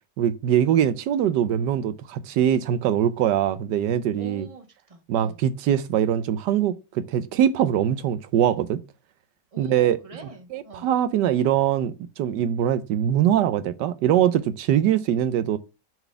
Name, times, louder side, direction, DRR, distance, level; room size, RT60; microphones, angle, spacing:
voice 1, 0.2-4.5 5.1-8.8 9.6-10.0 10.5-15.6, right 10 dB, 80° right, 1.2 m, -22 dB
voice 2, 4.2-5.4 9.5-10.9, right 3 dB, 20° right, 1.4 m, -44 dB
6.9 x 4.1 x 6.5 m
omnidirectional pair, 1.8 m